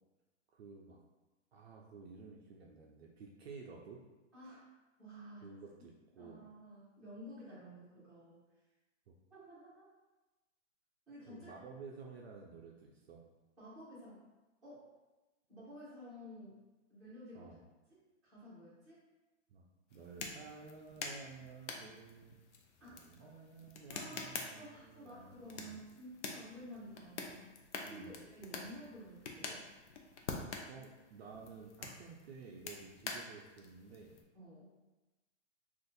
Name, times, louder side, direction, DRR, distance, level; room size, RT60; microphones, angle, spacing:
voice 1, 0.5-1.0 1.5-4.1 5.4-6.4 9.1-9.2 11.3-13.3 17.3-17.7 19.5-22.5 22.9-25.8 27.8-28.1 30.7-34.2, right 5 dB, 55° right, -1 dB, 0.4 m, -53 dB
voice 2, 4.3-4.7 5.0-5.5 6.2-8.4 9.3-9.9 11.1-11.5 13.6-14.2 14.6-14.8 15.5-16.6 16.9-17.5 18.2-19.0 22.8-23.3 23.9-27.5 27.9-29.6 34.3-34.7, equal, ahead, -14 dB, 0.9 m, -52 dB
sound 1, 19.9-34.2, left 4 dB, 65° left, 0.6 m, -47 dB
2.6 x 2.5 x 3.8 m, 1.1 s
hypercardioid pair, 170°, 38 cm